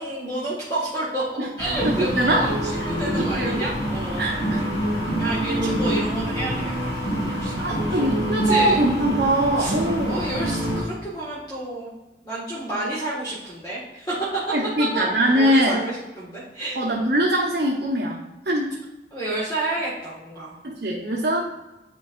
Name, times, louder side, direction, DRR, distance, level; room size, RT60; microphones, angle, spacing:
voice 1, 0.0-2.6 2.8-4.3 5.2-7.6 7.9-8.0 8.4-8.8 9.6-9.7 10.1-11.9 12.2-14.4 14.8-15.0 15.3-16.8 19.1-20.6, right 2 dB, 20° left, -8 dB, 1.6 m, -30 dB
voice 2, 1.4-2.4 3.1-3.7 4.2-4.6 7.6-10.2 14.5-15.8 16.7-18.7 20.6-21.4, right 1 dB, 65° right, -3 dB, 0.9 m, -23 dB
sound 1, 1.6-10.8, right 1 dB, 85° left, 2.2 m, -26 dB
9.5 x 4.6 x 2.5 m, 1.0 s
head